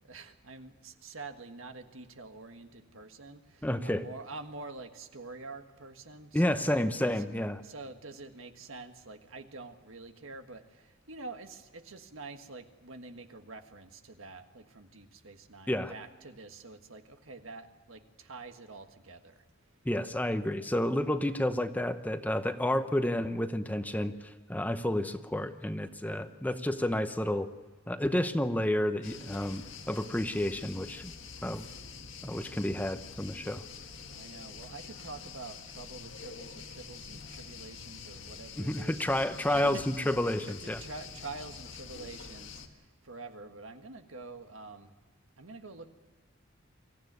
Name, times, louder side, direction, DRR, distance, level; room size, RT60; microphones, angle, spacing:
voice 1, 0.0-7.3 7.6-19.4 34.1-44.9 45.4-45.9, right 3 dB, 80° right, 7 dB, 1.6 m, -47 dB
voice 2, 3.6-4.1 6.3-7.6 15.7-15.9 19.8-24.1 24.5-27.5 27.9-31.1 31.4-31.6 32.2-33.6 38.6-40.8, left 1 dB, 10° left, 9 dB, 0.8 m, -30 dB
sound 1, 29.0-42.7, left 5 dB, 65° left, 1.7 m, -46 dB
24.0 x 15.0 x 9.5 m, 1.4 s
head